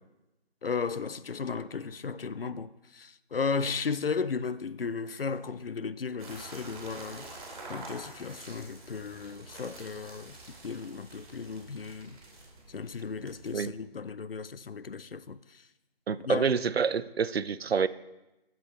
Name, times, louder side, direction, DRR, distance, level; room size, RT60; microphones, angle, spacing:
voice 1, 0.6-7.3 7.7-12.2 12.7-15.6 16.2-16.5, left 5 dB, 65° left, 0.5 m, -35 dB
sound 1, 6.2-13.5, right 2 dB, 35° right, 2.4 m, -47 dB
voice 2, 16.1-17.9, right 6 dB, 75° right, 0.5 m, -27 dB
10.0 x 7.5 x 3.6 m
figure-of-eight pair, 160°, 31 cm